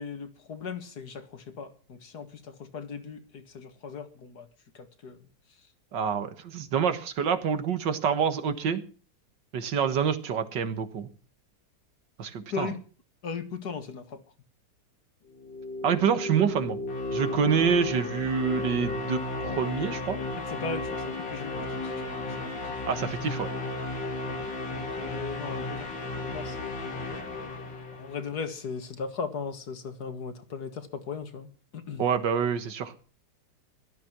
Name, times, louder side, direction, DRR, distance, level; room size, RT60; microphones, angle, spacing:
voice 1, 0.0-4.5 4.7-5.2 12.5-12.8 13.2-14.2 20.4-22.8 23.4-23.5 24.7-27.1 27.9-31.5 31.7-32.0, left 5 dB, 60° left, 2.1 m, -38 dB
voice 2, 5.9-8.8 9.5-11.1 12.2-12.7 15.8-16.8 17.1-20.2 22.9-23.5 32.0-32.9, right 7 dB, 75° right, 2.1 m, -27 dB
sound 1, 15.3-28.4, left 2 dB, 80° left, 3.2 m, -34 dB
16.5 x 13.0 x 6.1 m
omnidirectional pair, 2.0 m